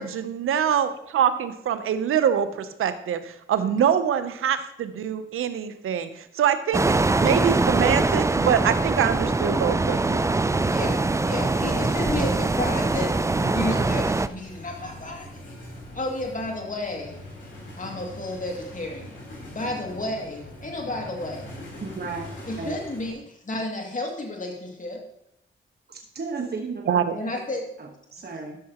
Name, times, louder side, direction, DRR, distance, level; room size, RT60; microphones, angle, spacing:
voice 1, 0.0-10.2 26.9-27.1, right 8 dB, 90° right, 11 dB, 0.7 m, -24 dB
sound 1, 6.7-14.3, right 3 dB, 15° right, 0.4 m, -23 dB
sound 2, 9.3-23.1, left 1 dB, 60° left, 3.6 m, -43 dB
voice 2, 10.5-15.5 15.9-17.1 17.8-19.2 19.5-21.5 22.5-25.0 27.2-27.6, left 2 dB, 40° left, 0 dB, 2.4 m, -32 dB
voice 3, 21.8-22.3 22.6-22.8 25.9-27.4 27.8-28.6, right 4 dB, 50° right, 1 dB, 1.3 m, -34 dB
12.5 x 6.4 x 2.9 m, 0.78 s
cardioid pair, 50°, 21 cm